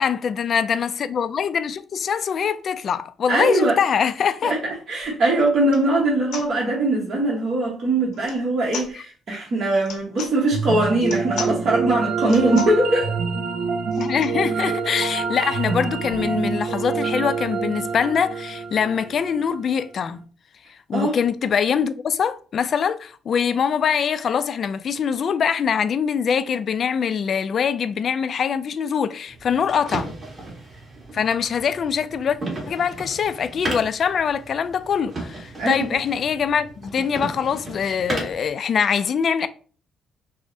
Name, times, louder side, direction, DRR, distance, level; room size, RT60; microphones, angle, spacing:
voice 1, 0.0-4.5 8.9-9.0 14.0-20.2 20.9-30.1 31.1-32.4 32.7-39.5, left 7 dB, 55° left, 0.3 m, -23 dB
voice 2, 3.3-3.8 4.4-13.1 20.9-21.1 35.6-35.9, right 2 dB, 55° right, 1.0 m, -21 dB
sound 1, 5.0-5.1 5.6-5.9 6.3-6.5 8.1-8.4 8.7-8.9 9.8-10.3 11.0-11.6 12.2-12.8 13.9-14.4 14.9-15.0 15.2-15.3 15.6-17.1, left 6 dB, 85° left, 0.8 m, -37 dB
sound 2, 10.5-19.7, right 5 dB, 85° right, 0.5 m, -26 dB
sound 3, 29.3-38.5, right 2 dB, 35° right, 1.7 m, -35 dB
5.9 x 2.1 x 2.6 m
cardioid pair, 90°, 0 cm